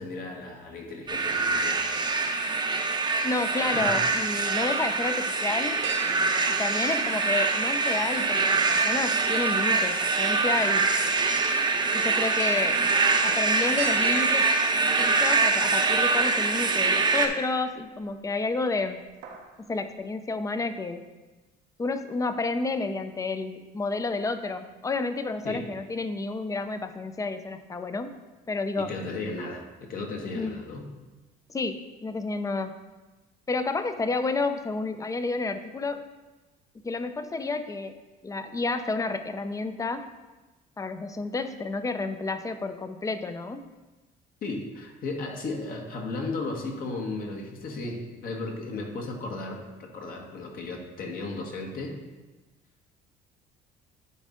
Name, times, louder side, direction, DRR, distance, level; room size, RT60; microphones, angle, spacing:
voice 1, 0.0-1.8 3.7-4.0 25.4-25.7 28.8-30.9 44.4-52.0, left 3 dB, 60° left, 1 dB, 1.3 m, -35 dB
sound 1, 1.1-17.3, right 3 dB, 25° right, 0.7 m, -24 dB
voice 2, 3.2-5.8 6.5-10.9 11.9-12.8 13.2-14.5 15.0-19.0 19.6-21.0 21.8-28.1 28.5-28.9 30.4-30.6 31.5-32.8 33.5-36.0 36.7-38.0 38.2-40.0 40.8-43.6, left 3 dB, 20° left, 9 dB, 0.5 m, -30 dB
sound 2, 3.2-4.2 4.6-4.7 5.8-7.5 7.8-15.7 16.1-16.2 17.7-18.3 18.6-18.8 19.0-19.6 19.9-20.0, right 6 dB, 90° right, 1.0 m, -42 dB
10.0 x 4.1 x 3.7 m, 1.2 s
cardioid pair, 110°, 17 cm